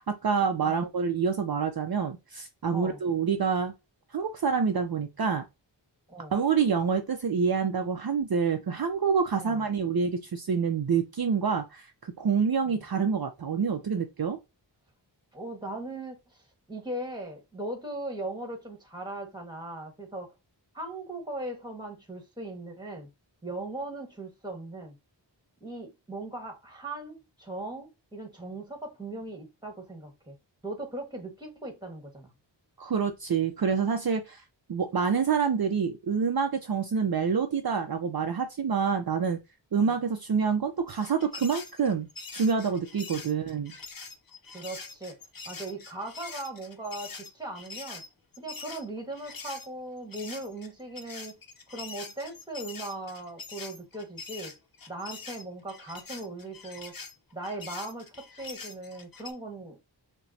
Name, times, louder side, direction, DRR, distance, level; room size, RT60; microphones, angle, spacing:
voice 1, 0.0-3.7 4.1-5.5 6.3-14.4 32.8-34.4 34.7-39.4 39.7-42.1 42.3-43.7, right 6 dB, 55° right, 0.6 m, -27 dB
voice 2, 15.3-16.2 16.7-20.3 20.7-23.1 23.4-24.9 25.6-30.3 30.6-32.3 39.8-39.9 44.5-45.2 45.4-48.0 48.4-51.4 51.7-54.5 54.9-56.9 57.3-59.8, right 2 dB, 10° right, 1.5 m, -39 dB
sound 1, 40.9-49.7 50.1-59.3, left 4 dB, 50° left, 0.8 m, -44 dB
5.7 x 2.2 x 2.7 m
wide cardioid pair, 45°, 45 cm